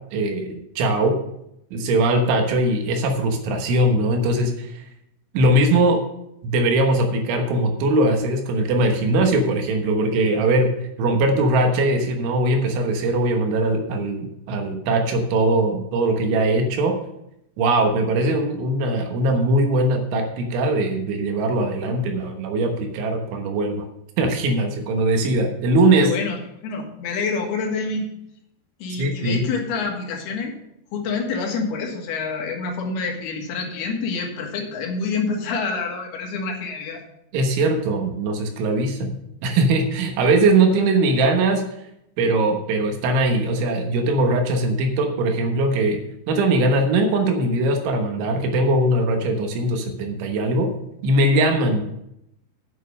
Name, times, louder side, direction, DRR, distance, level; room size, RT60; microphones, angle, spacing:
voice 1, 0.1-1.2 1.7-4.8 5.3-6.0 6.4-17.0 17.6-23.9 24.2-26.1 29.0-29.4 37.3-41.6 42.2-46.0 46.3-50.7 51.0-51.8, right 2 dB, 75° right, 3 dB, 3.6 m, -20 dB
voice 2, 25.9-28.1 28.8-30.5 30.9-37.0, left 4 dB, 65° left, 1 dB, 3.1 m, -27 dB
9.1 x 6.8 x 6.2 m, 0.79 s
omnidirectional pair, 5.6 m